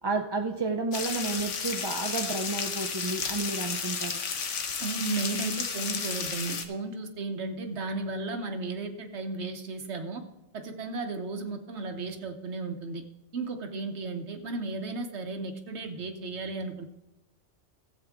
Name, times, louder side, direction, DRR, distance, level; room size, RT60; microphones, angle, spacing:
voice 1, 0.0-4.2, right 3 dB, 30° right, 3 dB, 0.4 m, -31 dB
sound 1, 0.9-6.6, left 5 dB, 80° left, 1.3 m, -32 dB
voice 2, 4.8-10.2 10.5-13.0 13.3-16.8, right 3 dB, 70° right, 5 dB, 1.2 m, -34 dB
14.0 x 8.1 x 3.6 m, 1.0 s
omnidirectional pair, 1.2 m